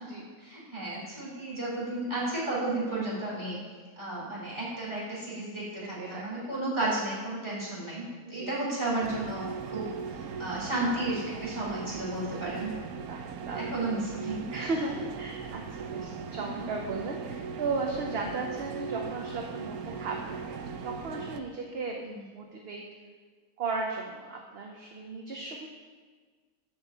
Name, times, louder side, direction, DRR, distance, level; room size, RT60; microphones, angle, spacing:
voice 1, 0.4-3.6 4.0-12.7 13.6-14.5 22.0-22.2, right 2 dB, 20° right, -7 dB, 3.2 m, -33 dB
voice 2, 5.8-6.5 8.2-8.5 10.4-10.7 11.6-11.8 13.1-13.8 14.5-20.6 20.8-22.8 23.6-25.7, right 3 dB, 50° right, 1 dB, 0.9 m, -36 dB
sound 1, 9.0-21.4, right 5 dB, 80° right, 1.1 m, -39 dB
7.7 x 5.6 x 7.2 m, 1.5 s
omnidirectional pair, 1.6 m